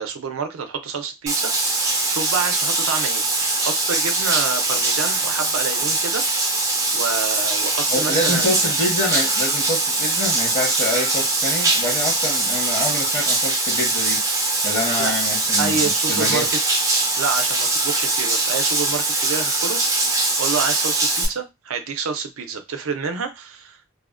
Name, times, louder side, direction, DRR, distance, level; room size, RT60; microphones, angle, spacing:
voice 1, 0.0-6.3 6.9-8.7 15.0-15.1 15.6-16.6 17.2-23.8, right 5 dB, 75° right, 0.5 m, -28 dB
Bathtub (filling or washing), 1.3-21.3, right 2 dB, 15° right, 0.5 m, -21 dB
voice 2, 7.9-14.2 14.6-15.8 16.1-16.4, left 1 dB, 30° left, 1.0 m, -26 dB
2.6 x 2.0 x 2.4 m
head